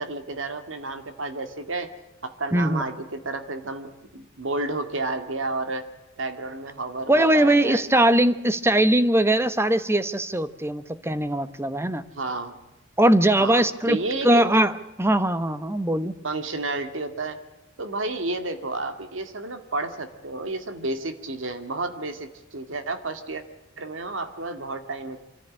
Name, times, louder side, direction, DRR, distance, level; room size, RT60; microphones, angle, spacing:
voice 1, 0.0-1.9 2.2-5.9 6.2-7.8 12.1-12.6 13.4-14.5 16.2-17.4 17.8-23.4 23.8-25.2, right 2 dB, 80° right, 8 dB, 2.1 m, -31 dB
voice 2, 2.5-2.9 7.1-12.0 13.0-14.0 14.2-14.7 15.0-16.1, right 1 dB, 15° right, 13 dB, 1.0 m, -20 dB
25.5 x 14.0 x 8.7 m, 1.0 s
head